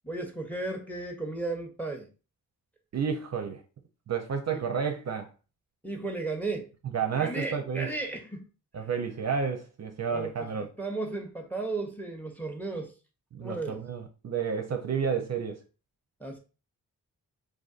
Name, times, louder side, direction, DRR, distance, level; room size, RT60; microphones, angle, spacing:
voice 1, 0.0-2.1 4.5-4.6 5.8-6.7 7.2-8.5 10.1-10.5 10.8-12.9 13.4-13.8 16.2-16.4, right 3 dB, 5° left, 0.6 m, -34 dB
voice 2, 2.9-3.6 4.1-5.3 6.9-7.9 8.7-10.7 13.3-15.6, right 6 dB, 45° right, 0.5 m, -31 dB
2.5 x 2.3 x 2.4 m
cardioid pair, 45°, 38 cm